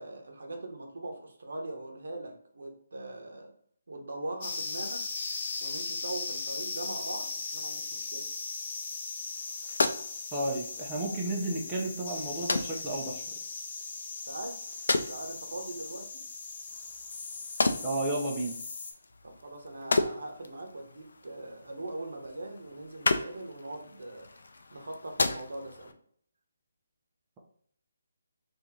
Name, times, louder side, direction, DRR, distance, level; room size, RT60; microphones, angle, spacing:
voice 1, 0.0-3.5 3.9-5.1 5.6-8.3 14.3-14.6 15.1-16.2 19.2-24.3 24.7-25.9, right 2 dB, 75° right, 2 dB, 1.0 m, -41 dB
sound 1, 4.4-18.9, left 4 dB, 40° left, 0.8 m, -38 dB
sound 2, 9.3-25.9, left 3 dB, 70° left, 0.4 m, -35 dB
voice 2, 10.3-13.2 17.8-18.6, right 2 dB, 15° right, -3 dB, 0.7 m, -32 dB
2.9 x 2.6 x 3.8 m, 0.62 s
figure-of-eight pair, 155°, 0 cm